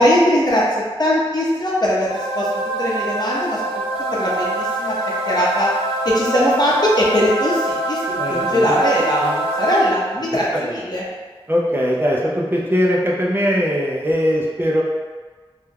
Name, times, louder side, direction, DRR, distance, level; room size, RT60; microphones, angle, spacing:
voice 1, 0.0-2.5 2.8-3.6 4.1-4.9 5.3-5.7 6.0-11.0, equal, 45° left, -6 dB, 0.7 m, -19 dB
sound 1, 2.1-10.3, right 2 dB, 90° right, 0.5 m, -24 dB
voice 2, 8.2-8.7 9.2-9.4 10.2-10.8 11.5-14.8, equal, 25° right, -4 dB, 0.4 m, -21 dB
2.3 x 2.1 x 3.3 m, 1.4 s
wide cardioid pair, 40°, 10 cm